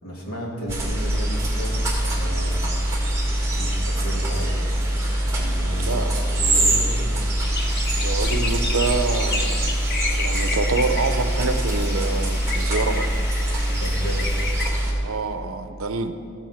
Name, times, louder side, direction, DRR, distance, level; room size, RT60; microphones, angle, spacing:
voice 1, 0.0-2.6 3.6-7.2 13.7-14.4, equal, 80° left, -3 dB, 2.8 m, -34 dB
sound 1, 0.7-14.9, right 1 dB, 15° right, 1.9 m, -23 dB
sound 2, 7.4-14.7, left 4 dB, 45° left, 1.0 m, -32 dB
voice 2, 8.0-13.1 15.0-16.1, right 4 dB, 65° right, 9 dB, 0.7 m, -27 dB
14.0 x 6.0 x 7.3 m, 2.6 s
head